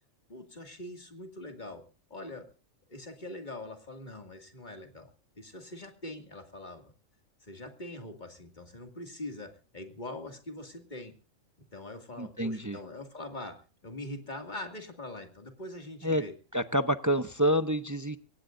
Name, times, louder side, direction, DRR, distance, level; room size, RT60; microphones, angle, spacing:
voice 1, 0.3-1.8 2.1-2.5 2.9-5.1 5.4-6.9 7.4-11.1 11.7-16.4, left 1 dB, 35° left, 5 dB, 2.3 m, -43 dB
voice 2, 12.2-12.8 16.0-16.2 16.5-18.2, equal, 25° right, 11 dB, 0.4 m, -28 dB
24.0 x 18.0 x 2.6 m, 0.34 s
omnidirectional pair, 1.4 m